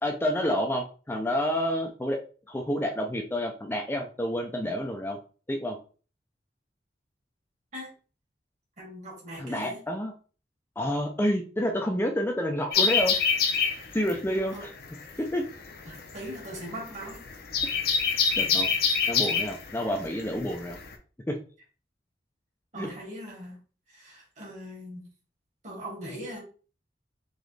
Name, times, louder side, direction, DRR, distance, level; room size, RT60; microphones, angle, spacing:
voice 1, 0.0-2.2 2.5-5.2 5.5-5.8 9.4-10.1 10.8-13.1 13.9-14.7 15.2-15.4 17.6-17.7 18.4-18.7 19.1-20.8 21.3-21.4 22.8-22.9, equal, 15° left, 2 dB, 0.4 m, -29 dB
voice 2, 8.8-9.8 14.1-14.2 14.5-14.7 15.9-17.3 18.7-19.0 22.7-23.6 23.9-25.0 25.6-26.4, equal, 40° right, -2 dB, 1.8 m, -40 dB
sound 1, 12.7-20.9, left 5 dB, 60° left, 0.7 m, -26 dB
3.9 x 3.0 x 3.3 m, 0.38 s
head